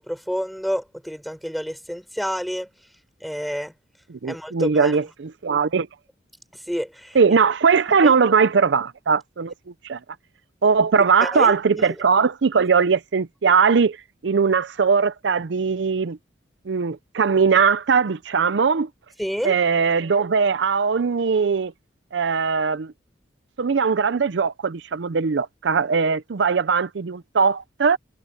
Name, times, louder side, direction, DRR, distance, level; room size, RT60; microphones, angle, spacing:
voice 1, 0.0-2.7 3.2-3.7 4.2-5.0 6.7-7.2 8.0-8.1 11.2-11.9 19.2-19.5, equal, ahead, 6.0 m, -29 dB
voice 2, 4.2-5.9 7.1-9.5 9.8-10.0 10.6-14.0 14.2-16.2 16.7-18.9 19.4-21.7 22.1-22.9 23.6-28.0, right 5 dB, 75° right, 0.5 m, -20 dB
head